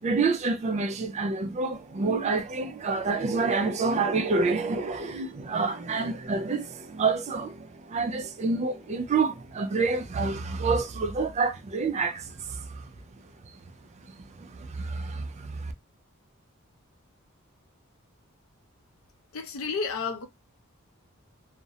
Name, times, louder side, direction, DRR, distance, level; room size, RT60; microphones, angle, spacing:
voice 1, 0.0-12.9 14.4-15.7, right 4 dB, 35° right, 0.3 m, -28 dB
voice 2, 19.3-20.3, left 5 dB, 75° left, 0.5 m, -31 dB
2.4 x 2.0 x 2.7 m
head